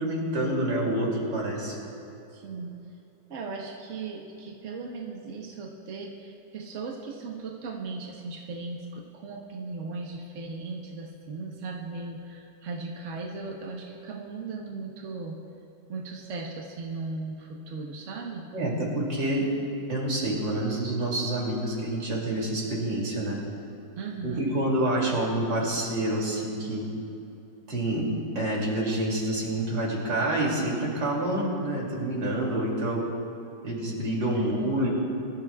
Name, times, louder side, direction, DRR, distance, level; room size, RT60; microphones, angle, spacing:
voice 1, 0.0-1.8 18.5-19.5 19.9-23.4 24.2-26.8 27.7-28.1 28.4-33.0 33.6-34.9, right 1 dB, 85° right, -3 dB, 3.5 m, -27 dB
voice 2, 2.3-2.7 3.3-15.4 15.9-18.5 24.0-24.4 34.3-34.7, right 3 dB, 45° right, -1 dB, 1.4 m, -37 dB
23.0 x 13.5 x 2.4 m, 2.8 s
omnidirectional pair, 1.9 m